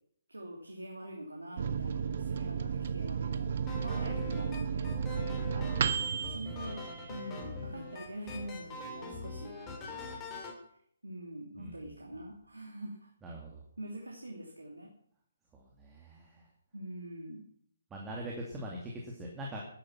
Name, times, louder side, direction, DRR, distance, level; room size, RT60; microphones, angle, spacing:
voice 1, 0.3-4.9 6.2-9.6 11.0-13.1 13.8-14.9 16.7-17.4, right 1 dB, 80° right, 0 dB, 3.0 m, -44 dB
Microwave oven, 1.6-7.7 8.1-8.2 8.4-9.0, right 7 dB, 45° right, 1.1 m, -34 dB
sound 1, 3.7-10.6, left 3 dB, 20° left, 3.1 m, -42 dB
voice 2, 13.2-13.6 15.5-16.4 17.9-19.7, right 1 dB, 10° right, -2 dB, 2.4 m, -42 dB
13.0 x 10.5 x 5.9 m, 0.65 s
figure-of-eight pair, 135°, 0 cm